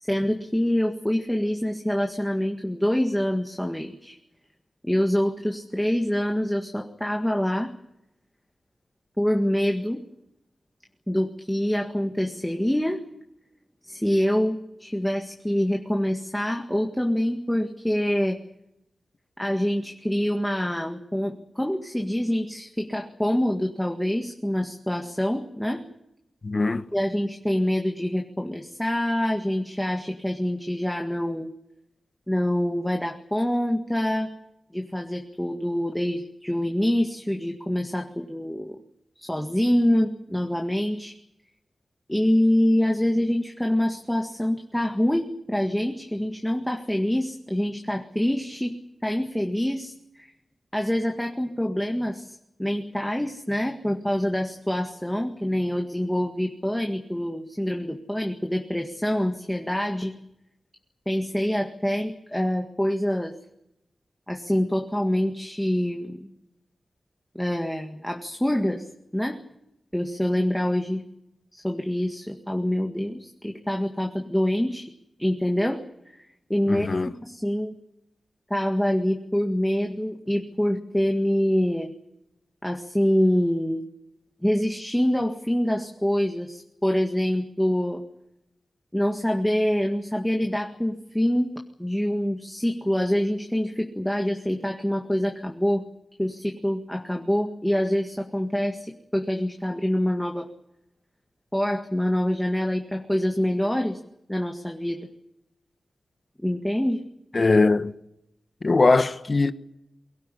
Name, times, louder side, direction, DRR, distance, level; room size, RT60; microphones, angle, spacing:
voice 1, 0.0-4.2 4.8-7.7 9.2-10.0 11.1-13.0 13.8-18.4 19.4-25.8 26.9-31.5 32.3-34.3 34.7-38.8 39.2-41.1 42.1-48.8 49.0-50.3 50.7-60.1 61.1-63.3 64.3-66.3 67.4-68.8 69.1-69.4 69.9-71.0 71.5-74.9 75.2-76.2 76.5-76.9 77.2-77.7 78.5-81.9 82.6-83.9 84.4-88.0 88.9-91.5 91.8-95.8 96.2-100.5 101.5-104.0 104.3-105.1 106.4-107.0, equal, 5° left, 1.9 m, -25 dB
voice 2, 26.4-26.8 76.7-77.1 107.3-107.9 108.6-109.5, left 3 dB, 35° left, 1.2 m, -20 dB
23.5 x 17.0 x 10.0 m
wide cardioid pair, 140°, 0 cm